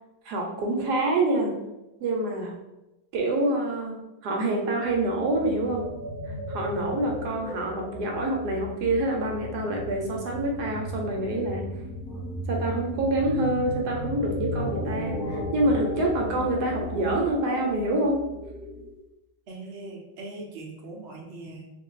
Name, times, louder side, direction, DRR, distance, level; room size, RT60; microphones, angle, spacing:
voice 1, 0.2-1.5 2.0-2.5 3.1-5.8 6.3-11.6 12.5-18.2, right 1 dB, 70° right, 0 dB, 1.1 m, -26 dB
sound 1, 4.9-19.0, left 1 dB, 10° right, 0.9 m, -35 dB
voice 2, 19.5-21.7, right 2 dB, 55° right, -2 dB, 0.7 m, -40 dB
2.6 x 2.6 x 3.8 m, 0.95 s
omnidirectional pair, 1.9 m